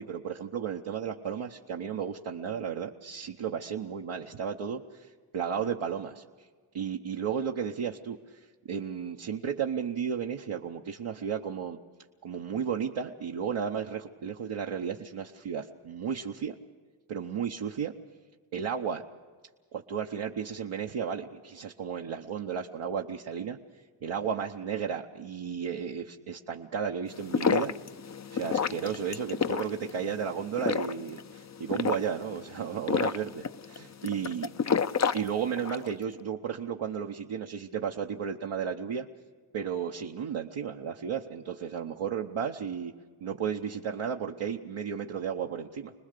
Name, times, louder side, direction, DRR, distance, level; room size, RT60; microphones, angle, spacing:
voice 1, 0.0-6.2 6.7-8.4 8.7-11.8 12.2-16.5 17.1-17.9 18.5-19.0 19.7-23.6 24.0-27.7 28.3-34.5 35.1-39.1 39.5-42.9 43.2-45.9, right 7 dB, 75° right, 0 dB, 1.0 m, -33 dB
sound 1, 27.1-35.9, left 6 dB, 35° left, 0.6 m, -31 dB
27.0 x 20.0 x 6.7 m, 1.5 s
cardioid pair, 40°, 49 cm